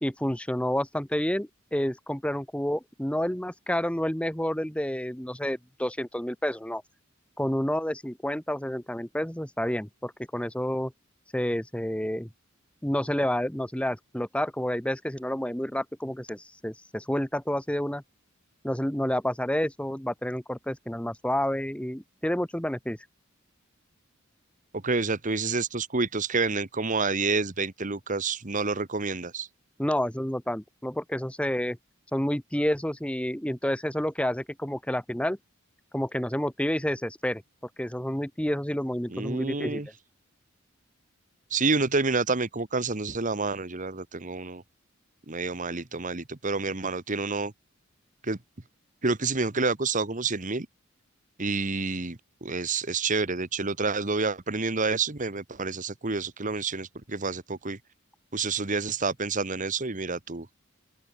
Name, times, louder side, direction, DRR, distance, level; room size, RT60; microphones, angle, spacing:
voice 1, 0.0-6.8 7.4-10.9 11.3-12.3 12.8-18.0 18.6-23.0 29.8-31.8 32.1-35.4 35.9-37.4 37.8-39.8, equal, 5° left, 1.6 m, -29 dB
voice 2, 24.8-29.5 39.1-39.9 41.5-44.6 45.3-47.5 48.2-48.4 49.0-50.7 51.4-57.8 58.3-60.5, right 4 dB, 40° right, 1.5 m, -28 dB
open air
head